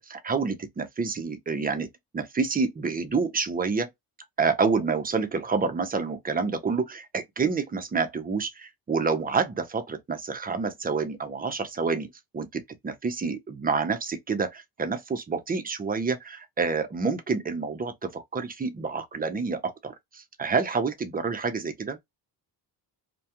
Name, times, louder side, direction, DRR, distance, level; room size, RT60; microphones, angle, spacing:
voice 1, 0.0-1.9 2.1-3.9 4.4-12.1 12.3-22.0, right 4 dB, 20° right, 0.4 m, -28 dB
2.3 x 2.2 x 2.7 m
cardioid pair, 110°, 44 cm